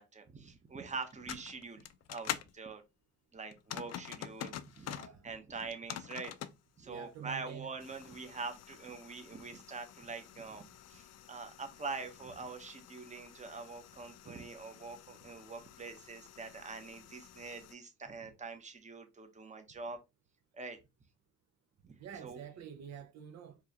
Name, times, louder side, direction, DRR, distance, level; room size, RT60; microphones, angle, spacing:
voice 1, 0.0-2.8 3.3-6.3 6.8-20.0 20.5-20.8 21.8-22.0 22.2-22.4, right 4 dB, 25° right, 0.9 m, -44 dB
sound 1, 1.0-2.5 3.5-5.1 5.6-6.6 7.8-17.7, left 11 dB, 60° left, 0.5 m, -47 dB
voice 2, 4.8-5.3 6.8-7.7 22.0-23.6, right 8 dB, 60° right, 0.6 m, -47 dB
4.7 x 2.4 x 2.8 m
cardioid pair, 90°, 30 cm